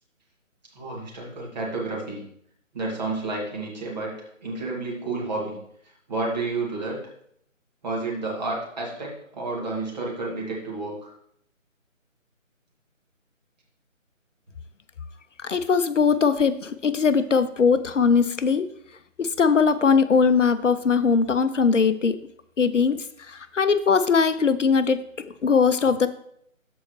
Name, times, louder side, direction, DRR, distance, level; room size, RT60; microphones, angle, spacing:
voice 1, 0.8-2.2 2.7-4.1 4.4-5.5 6.1-7.0 7.8-11.1, right 3 dB, 30° right, -3 dB, 2.1 m, -30 dB
voice 2, 15.4-18.7 19.2-22.2 22.6-25.0 25.4-26.1, left 5 dB, 65° left, 12 dB, 0.6 m, -20 dB
13.0 x 4.6 x 3.1 m, 0.70 s
figure-of-eight pair, 160°, 40 cm